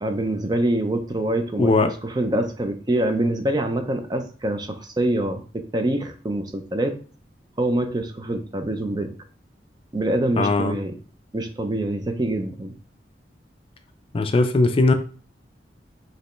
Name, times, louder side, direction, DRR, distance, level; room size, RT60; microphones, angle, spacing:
voice 1, 0.0-7.0 7.6-9.1 9.9-10.9 11.3-12.7, right 1 dB, 25° right, 7 dB, 0.5 m, -25 dB
voice 2, 1.6-1.9 10.4-10.8 14.1-14.9, left 3 dB, 30° left, 8 dB, 0.4 m, -19 dB
5.3 x 3.0 x 3.1 m, 0.40 s
head